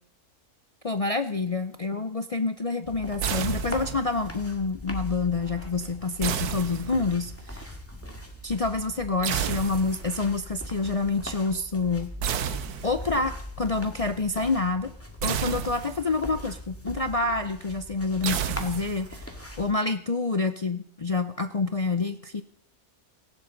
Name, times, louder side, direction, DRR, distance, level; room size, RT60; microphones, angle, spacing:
voice 1, 0.8-7.8 8.4-12.1 12.8-14.9 15.2-22.4, left 3 dB, 55° left, 8 dB, 0.4 m, -28 dB
sound 1, 2.8-19.7, left 1 dB, 10° left, 1.9 m, -40 dB
sound 2, 3.2-4.2 6.2-7.3 9.2-10.2 12.2-13.2 15.2-16.2 18.2-19.2, right 8 dB, 80° right, 1.4 m, -31 dB
17.5 x 16.5 x 3.9 m, 0.66 s
omnidirectional pair, 1.6 m